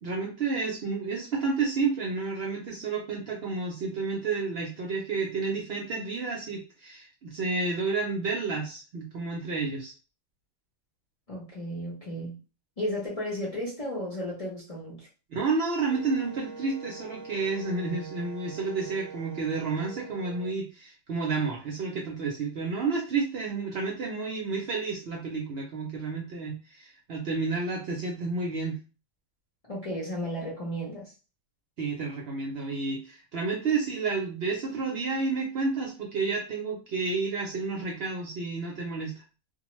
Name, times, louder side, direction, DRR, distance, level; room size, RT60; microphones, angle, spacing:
voice 1, 0.0-9.9 15.3-28.8 31.8-39.2, right 4 dB, 60° right, 0.7 m, -30 dB
voice 2, 11.3-12.4 12.8-15.1 29.7-31.1, equal, 35° left, 0.6 m, -34 dB
Wind instrument woodwind instrument, 15.9-20.5, right 3 dB, 90° right, 0.3 m, -44 dB
2.2 x 2.2 x 3.0 m
omnidirectional pair, 1.4 m